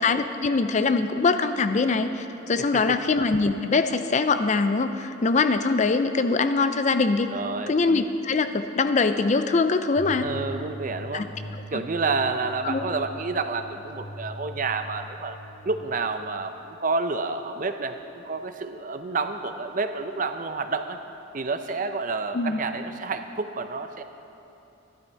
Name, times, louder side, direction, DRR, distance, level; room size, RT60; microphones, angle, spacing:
voice 1, 0.0-7.3 7.7-10.3 11.1-11.3 11.5-11.8 12.6-12.9 22.3-22.6, left 4 dB, 35° left, 9 dB, 0.4 m, -23 dB
voice 2, 7.3-7.7 10.2-11.3 11.7-15.4 15.6-16.5 16.8-21.0 21.3-24.0, right 3 dB, 40° right, 8 dB, 0.5 m, -29 dB
sound 1, 9.9-15.9, left 1 dB, 70° left, 2.7 m, -40 dB
12.5 x 12.0 x 4.5 m, 2.8 s
head